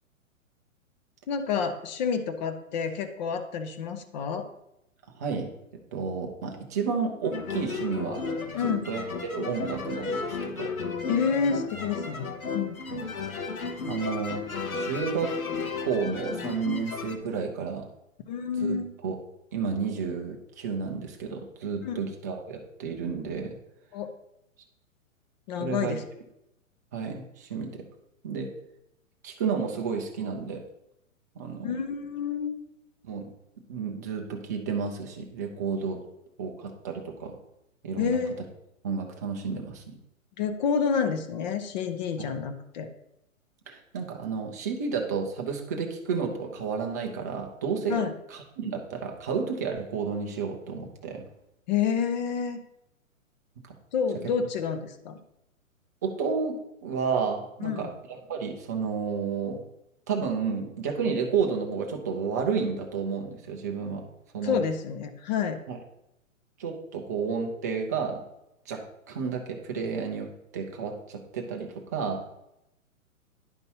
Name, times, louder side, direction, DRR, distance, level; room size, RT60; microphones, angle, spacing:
voice 1, 1.3-4.5 8.5-8.9 11.1-12.3 12.5-12.8 18.3-18.9 21.8-22.0 23.9-24.1 25.5-26.0 31.6-32.6 38.0-38.4 40.4-42.9 47.9-48.1 51.7-52.6 53.9-55.2 57.6-57.9 64.4-65.6, left 6 dB, 35° left, 10 dB, 0.7 m, -29 dB
voice 2, 5.2-5.5 5.9-8.2 8.6-10.7 12.9-13.0 13.9-14.4 14.7-15.3 15.8-17.9 18.6-18.8 19.0-19.2 19.5-23.6 25.6-26.0 26.9-27.8 28.2-28.5 29.2-30.6 31.4-31.7 33.0-33.3 33.7-36.0 36.4-37.4 37.8-38.2 38.8-40.0 42.2-42.3 43.7-48.0 48.3-51.2 53.6-53.8 56.0-59.6 60.1-64.1 64.3-64.6 65.7-65.8 66.6-68.2 68.7-72.2, right 5 dB, 15° right, 1 dB, 0.4 m, -31 dB
sound 1, 7.2-17.2, left 4 dB, 85° left, 0.9 m, -34 dB
10.5 x 5.3 x 2.8 m, 0.85 s
figure-of-eight pair, 120°, 41 cm